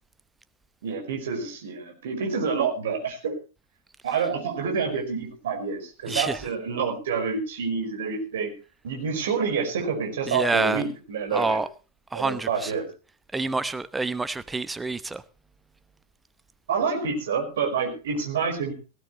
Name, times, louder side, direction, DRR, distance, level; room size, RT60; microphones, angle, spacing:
voice 1, 0.8-3.3 4.0-8.5 8.8-11.6 12.1-12.9 16.7-18.7, right 5 dB, 60° right, 5.2 m, -28 dB
voice 2, 6.1-6.4 10.3-10.8 11.3-11.7 12.1-12.7 13.3-15.2, right 3 dB, 10° right, 0.9 m, -27 dB
17.5 x 16.0 x 3.2 m
figure-of-eight pair, 90°, 0 cm